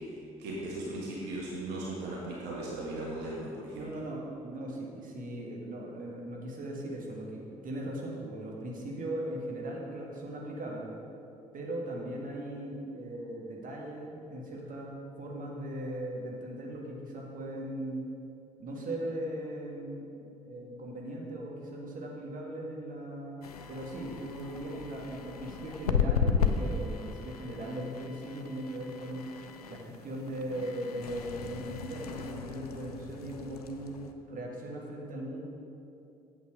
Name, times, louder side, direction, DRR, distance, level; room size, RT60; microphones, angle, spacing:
voice 1, 0.0-3.9, right 1 dB, 65° right, -5 dB, 1.5 m, -38 dB
voice 2, 3.7-10.9 11.5-14.9 15.2-18.1 18.6-20.2 20.4-23.4 23.7-29.3 29.7-35.4, right 1 dB, 45° right, -2 dB, 1.6 m, -39 dB
sound 1, 23.4-34.1, left 6 dB, 85° left, 0.4 m, -35 dB
8.6 x 7.3 x 4.7 m, 2.7 s
figure-of-eight pair, 45°, 19 cm